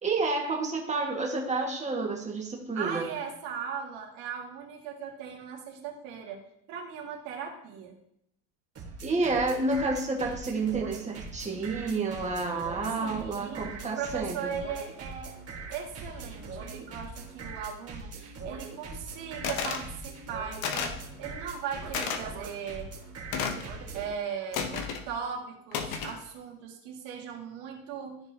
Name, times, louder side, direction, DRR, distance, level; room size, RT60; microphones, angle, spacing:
voice 1, 0.0-3.1 9.0-14.5, right 3 dB, 15° right, -1 dB, 1.9 m, -30 dB
voice 2, 2.7-6.4 6.7-7.9 13.0-15.3 15.7-22.9 23.9-28.2, right 7 dB, 65° right, 0 dB, 2.2 m, -38 dB
sound 1, 8.8-24.1, right 3 dB, 30° right, 1.7 m, -42 dB
sound 2, 19.4-19.9 20.6-21.0 21.9-22.2 23.3-23.7 24.5-25.0 25.7-26.2, left 6 dB, 55° left, 1.1 m, -32 dB
13.5 x 4.6 x 2.9 m, 0.73 s
supercardioid pair, 105°, 46 cm